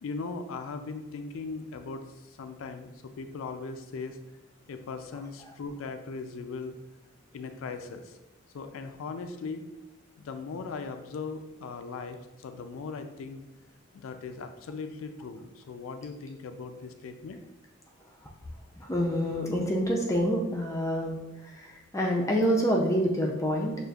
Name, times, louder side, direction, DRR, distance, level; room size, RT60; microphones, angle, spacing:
voice 1, 0.0-4.2 4.7-6.8 7.3-8.2 8.5-9.7 10.2-13.4 13.9-17.4, left 4 dB, 80° left, 8 dB, 0.4 m, -39 dB
voice 2, 18.8-21.2 21.4-23.7, equal, 15° left, -1 dB, 0.4 m, -27 dB
6.4 x 2.4 x 2.3 m, 0.99 s
head